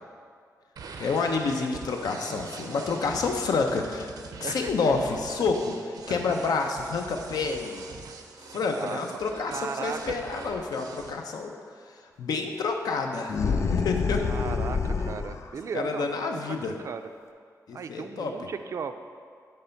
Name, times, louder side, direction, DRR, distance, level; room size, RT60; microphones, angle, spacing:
sound 1, 0.8-11.1, right 4 dB, 85° right, 0.6 m, -43 dB
voice 1, 1.0-4.1 4.4-5.8 6.1-7.9 8.5-11.5 12.2-13.4 13.7-14.2 15.7-16.8 17.7-18.3, left 4 dB, 90° left, 3 dB, 0.7 m, -28 dB
voice 2, 4.4-4.7 8.8-9.2 9.5-10.1 14.3-17.1 17.7-19.0, right 6 dB, 50° right, 9 dB, 0.4 m, -36 dB
sound 2, 13.3-15.5, left 5 dB, 50° left, 0.4 m, -27 dB
9.2 x 3.3 x 5.8 m, 2.1 s
wide cardioid pair, 165°, 6 cm